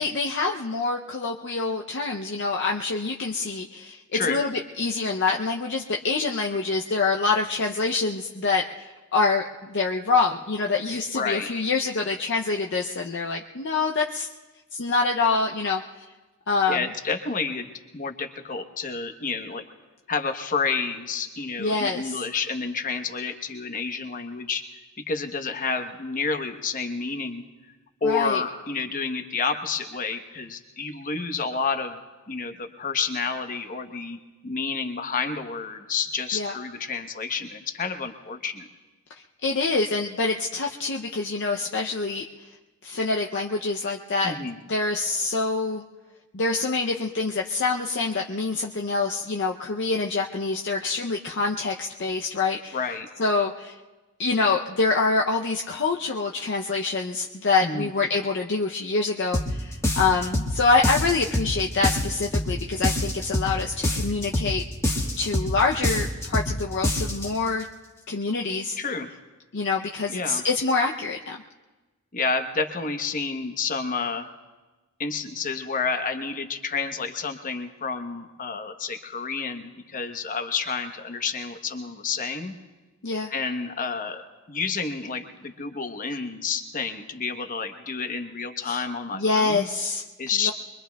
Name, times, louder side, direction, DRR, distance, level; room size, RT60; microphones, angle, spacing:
voice 1, 0.0-9.4 9.7-14.3 14.8-15.8 16.5-16.9 21.6-22.2 28.0-28.4 36.3-36.5 39.4-42.2 42.8-44.3 44.7-45.8 46.3-52.8 53.2-53.8 54.2-64.6 65.2-67.7 68.1-68.8 69.5-71.4 83.0-83.3 88.7-88.8 89.1-90.0 90.4-90.5, left 4 dB, 55° left, 1 dB, 0.6 m, -25 dB
voice 2, 11.1-11.5 16.7-19.6 20.1-24.7 25.1-27.4 28.0-32.0 32.3-34.2 34.4-38.7 44.2-44.6 52.7-53.1 57.6-57.9 68.8-69.1 70.1-70.4 72.1-74.3 75.0-82.5 83.3-84.2 84.5-89.7 90.2-90.5, left 5 dB, 40° left, 6 dB, 1.0 m, -29 dB
sound 1, 59.3-59.5 59.8-60.5 60.8-61.5 61.8-62.5 62.8-63.5 63.8-64.5 64.8-65.5 65.8-66.5 66.8-67.3, left 1 dB, 15° left, 1.3 m, -25 dB
24.5 x 23.0 x 2.3 m, 1.2 s
head